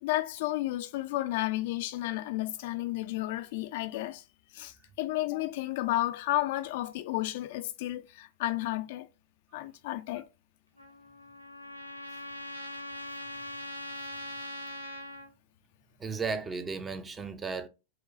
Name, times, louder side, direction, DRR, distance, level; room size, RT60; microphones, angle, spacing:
voice 1, 0.0-4.2 4.5-9.1 9.5-10.3, left 16 dB, 50° left, 0.4 m, -32 dB
Trumpet, 10.8-15.3, left 1 dB, 90° left, 0.7 m, -41 dB
voice 2, 16.0-17.7, right 4 dB, 15° right, 0.6 m, -34 dB
4.9 x 2.2 x 3.9 m
figure-of-eight pair, 90°, 0 cm